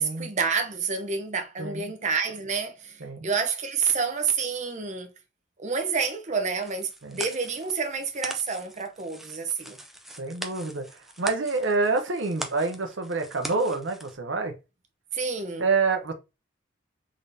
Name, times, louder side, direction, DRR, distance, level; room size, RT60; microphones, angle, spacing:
voice 1, 0.0-5.1 5.6-9.8 15.1-15.6, right 5 dB, 40° right, 0.8 m, -29 dB
voice 2, 1.6-1.9 3.0-3.3 7.0-7.2 10.1-14.5 15.6-16.1, right 3 dB, 75° right, 0.8 m, -27 dB
sound 1, 6.6-14.2, right 1 dB, ahead, 0.5 m, -41 dB
3.8 x 3.6 x 2.7 m
head